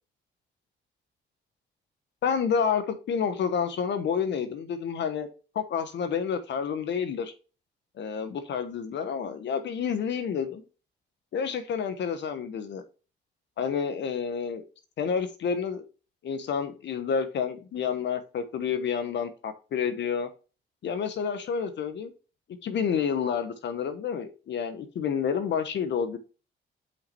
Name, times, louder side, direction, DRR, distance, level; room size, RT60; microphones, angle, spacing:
voice 1, 2.2-5.3 5.5-7.3 8.0-10.6 11.3-12.8 13.6-14.6 15.0-15.8 16.2-20.3 20.8-22.1 22.6-26.2, left 7 dB, 65° left, 9 dB, 1.0 m, -29 dB
5.8 x 5.3 x 4.2 m, 0.34 s
cardioid pair, 90°, 20 cm